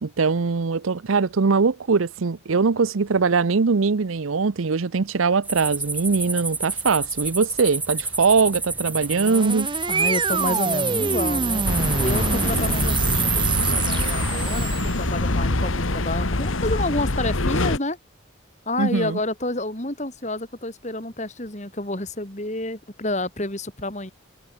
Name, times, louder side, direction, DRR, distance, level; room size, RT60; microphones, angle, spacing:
voice 1, 0.0-9.7 18.8-19.2, right 4 dB, 85° right, 0.7 m, -21 dB
sound 1, 5.4-14.1, right 3 dB, 10° right, 3.1 m, -30 dB
sound 2, 9.0-15.3, right 5 dB, 25° right, 0.4 m, -26 dB
voice 2, 9.9-11.6 12.0-18.0 18.7-24.1, left 2 dB, 35° left, 3.6 m, -29 dB
sound 3, 11.6-17.8, left 2 dB, 85° left, 1.8 m, -24 dB
head